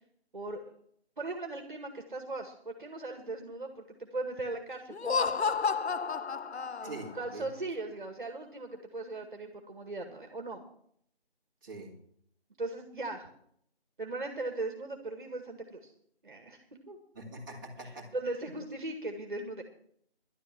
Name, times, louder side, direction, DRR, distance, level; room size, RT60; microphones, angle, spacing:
voice 1, 0.3-0.7 1.2-5.4 6.8-10.6 12.6-13.3 14.0-15.9 16.2-17.0 17.8-19.6, right 2 dB, 50° right, 5 dB, 2.0 m, -38 dB
Laughter, 4.9-7.2, left 5 dB, 85° left, 0.7 m, -31 dB
voice 2, 6.8-7.5 11.6-12.0 17.1-18.1 18.5-18.6, right 2 dB, 20° right, -4 dB, 2.5 m, -44 dB
11.5 x 11.0 x 6.1 m, 0.66 s
figure-of-eight pair, 165°, 32 cm